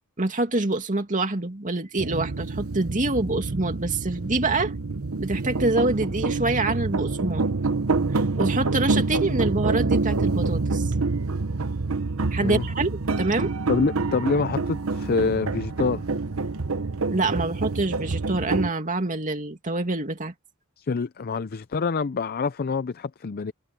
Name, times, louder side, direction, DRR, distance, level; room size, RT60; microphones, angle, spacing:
voice 1, 0.2-4.7 5.2-7.4 8.4-10.9 12.3-13.5 17.1-20.3, right 2 dB, 40° right, 2.6 m, -26 dB
sound 1, 2.0-18.7, right 3 dB, 85° right, 1.0 m, -27 dB
voice 2, 13.7-16.0 20.8-23.5, left 4 dB, 45° left, 0.5 m, -26 dB
head